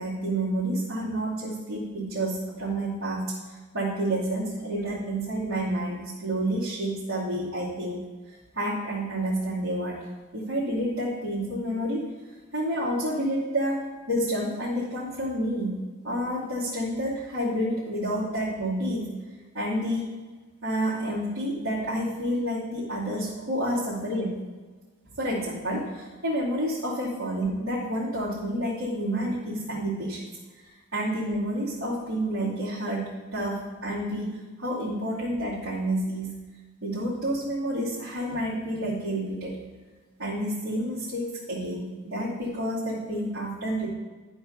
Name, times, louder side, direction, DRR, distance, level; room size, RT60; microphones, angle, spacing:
voice 1, 0.0-8.0 8.5-10.1 10.3-12.0 12.5-15.8 16.0-19.1 19.5-20.1 20.6-24.3 25.2-30.3 30.9-36.3 36.8-39.6 40.2-43.9, right 1 dB, 90° right, -10 dB, 2.7 m, -29 dB
11.5 x 4.5 x 5.8 m, 1.3 s
head